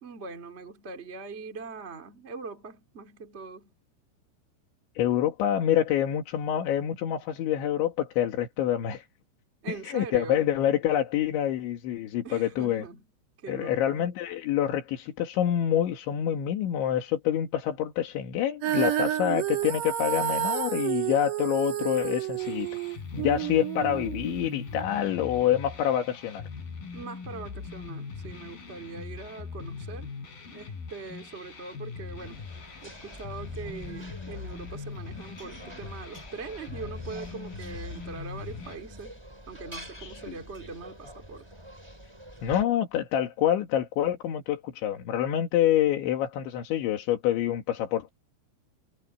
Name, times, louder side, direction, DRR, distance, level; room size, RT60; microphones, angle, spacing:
voice 1, 0.0-3.7 9.6-10.4 12.2-13.0 13.4-14.0 26.9-30.1 30.5-32.5 32.8-39.2 39.5-41.5, right 4 dB, 25° right, 1.4 m, -41 dB
voice 2, 5.0-9.0 9.8-12.8 13.5-22.7 23.1-26.4 40.0-40.4 42.4-48.1, left 11 dB, 85° left, 4.5 m, -27 dB
Female singing, 18.6-24.8, right 12 dB, 70° right, 4.8 m, -30 dB
sound 1, 22.4-38.8, left 5 dB, 55° left, 6.6 m, -41 dB
sound 2, 32.2-42.6, equal, 5° right, 6.4 m, -46 dB
omnidirectional pair, 5.2 m